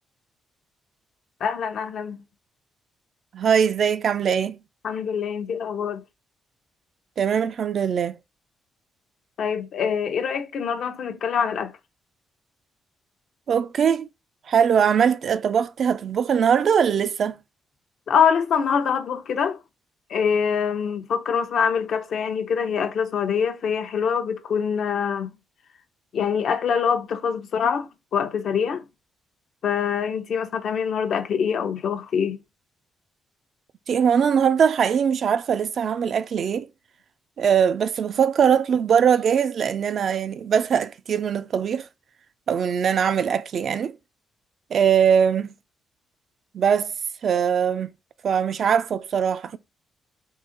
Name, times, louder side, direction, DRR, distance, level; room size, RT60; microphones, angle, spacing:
voice 1, 1.4-2.2 4.8-6.0 9.4-11.7 18.1-19.6 20.1-25.3 26.1-28.8 29.6-32.4, left 7 dB, 65° left, 0.6 m, -24 dB
voice 2, 3.3-4.6 7.2-8.2 13.5-14.1 14.5-17.4 33.9-36.7 37.4-41.9 42.5-43.9 44.7-45.5 46.5-46.9 47.2-47.9 48.2-49.6, right 7 dB, 55° right, 0.4 m, -21 dB
3.8 x 2.8 x 3.8 m
cardioid pair, 90°, 0 cm